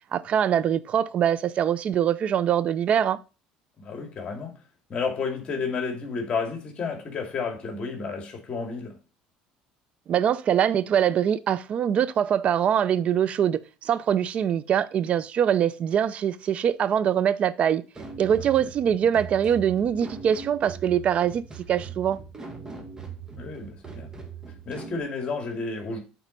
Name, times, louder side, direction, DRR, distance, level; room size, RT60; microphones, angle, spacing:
voice 1, 0.1-3.2 10.1-17.8 18.2-21.4 21.7-22.2, right 9 dB, 45° right, 0.6 m, -23 dB
voice 2, 3.8-4.6 4.9-9.0 18.4-18.7 23.4-24.1 24.6-26.0, left 4 dB, 40° left, 2.4 m, -31 dB
sound 1, 17.9-25.0, right 5 dB, 20° right, 1.8 m, -40 dB
8.3 x 4.3 x 5.3 m
supercardioid pair, 95°, 3 cm